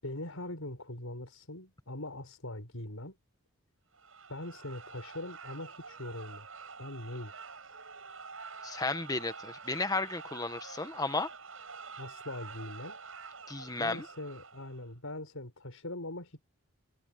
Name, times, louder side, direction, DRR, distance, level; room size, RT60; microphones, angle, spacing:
voice 1, 0.0-3.2 4.3-6.5 6.8-7.3 12.0-13.0 13.8-16.4, left 1 dB, 80° left, 5.6 m, -42 dB
sound 1, 3.9-14.9, right 5 dB, 75° right, 6.1 m, -47 dB
voice 2, 8.6-11.3 13.5-14.0, left 3 dB, 15° left, 1.2 m, -33 dB
head